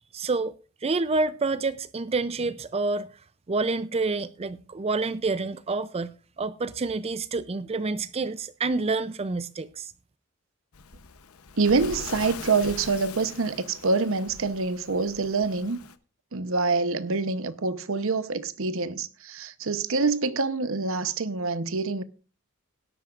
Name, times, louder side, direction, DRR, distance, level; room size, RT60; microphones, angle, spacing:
voice 1, 0.1-0.5 0.8-3.1 3.5-9.9, right 3 dB, 30° right, 0.5 m, -28 dB
Waves surf, 10.7-16.0, left 5 dB, 90° left, 0.9 m, -42 dB
voice 2, 11.6-15.8 16.3-22.0, right 4 dB, 65° right, 0.9 m, -26 dB
17.5 x 12.5 x 2.5 m
head